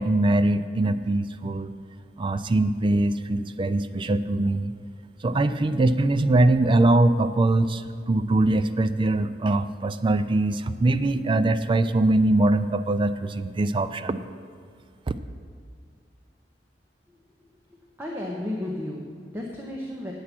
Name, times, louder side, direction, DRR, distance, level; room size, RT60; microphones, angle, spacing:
voice 1, 0.0-1.7 2.2-4.7 5.2-14.2 15.1-15.2, right 2 dB, 30° right, 11 dB, 0.3 m, -22 dB
voice 2, 18.0-20.1, left 1 dB, 15° right, -2 dB, 0.9 m, -33 dB
8.5 x 8.5 x 6.0 m, 2.2 s
head